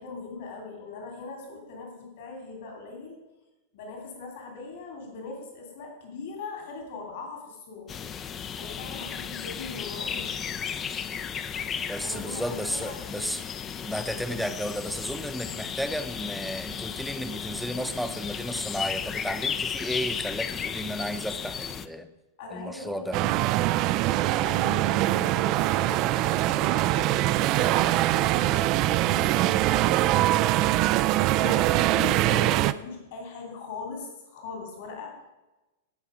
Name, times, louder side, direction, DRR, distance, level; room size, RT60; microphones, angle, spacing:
voice 1, 0.0-3.2 3.7-7.9 8.6-10.4 12.0-13.3 22.4-23.5 24.0-30.7 31.2-35.3, left 4 dB, 55° left, 1 dB, 2.8 m, -40 dB
sound 1, 7.9-21.9, left 7 dB, 25° left, 0.6 m, -34 dB
voice 2, 11.7-13.4 13.8-22.1 22.5-23.2, equal, ahead, 10 dB, 0.9 m, -33 dB
sound 2, 23.1-32.7, right 15 dB, 40° right, 0.4 m, -23 dB
16.5 x 5.9 x 5.0 m, 1.0 s
figure-of-eight pair, 95°, 0 cm